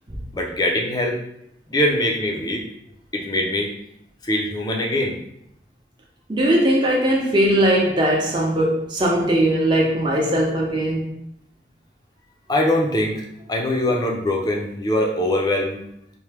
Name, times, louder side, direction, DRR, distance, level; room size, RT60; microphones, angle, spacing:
voice 1, 0.3-1.2 1.7-2.6 3.1-3.7 4.2-5.2 12.5-15.8, left 1 dB, 20° left, 1 dB, 0.5 m, -22 dB
voice 2, 6.3-11.1, right 1 dB, 25° right, -3 dB, 0.7 m, -19 dB
4.5 x 2.1 x 3.3 m, 0.75 s
head